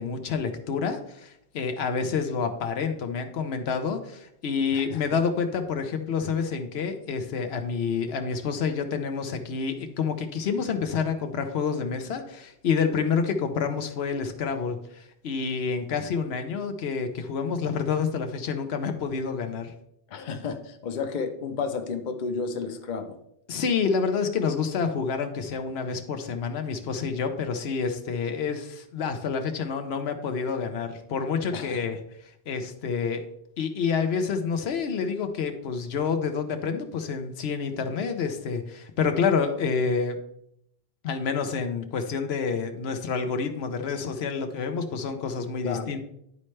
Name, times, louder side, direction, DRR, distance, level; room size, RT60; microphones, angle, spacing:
voice 1, 0.0-19.7 23.5-32.0 32.5-33.3 33.6-40.2 41.0-46.0, left 5 dB, 85° left, 7 dB, 1.0 m, -28 dB
voice 2, 4.7-5.0 20.1-23.2 31.5-31.8 45.6-46.0, left 5 dB, 55° left, 7 dB, 0.8 m, -32 dB
11.0 x 4.3 x 3.2 m, 0.75 s
omnidirectional pair, 1.0 m